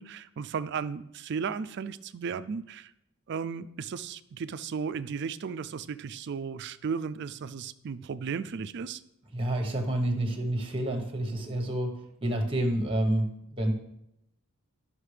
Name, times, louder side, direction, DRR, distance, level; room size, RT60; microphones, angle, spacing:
voice 1, 0.0-2.9 3.3-9.0, right 6 dB, 50° right, 14 dB, 0.4 m, -35 dB
voice 2, 9.3-13.7, right 1 dB, 25° right, 3 dB, 1.1 m, -29 dB
12.5 x 5.5 x 3.3 m, 0.81 s
head